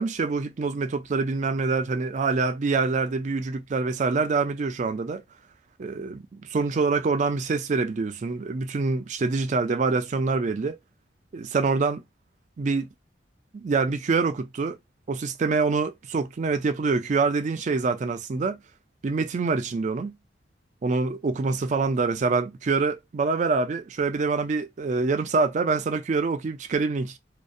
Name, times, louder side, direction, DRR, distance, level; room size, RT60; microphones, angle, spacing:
voice 1, 0.0-5.2 5.8-10.8 11.3-12.0 12.6-12.9 13.5-14.8 15.1-18.6 19.0-20.1 20.8-27.2, right 4 dB, 40° right, 0.3 m, -25 dB
2.6 x 2.1 x 2.4 m
head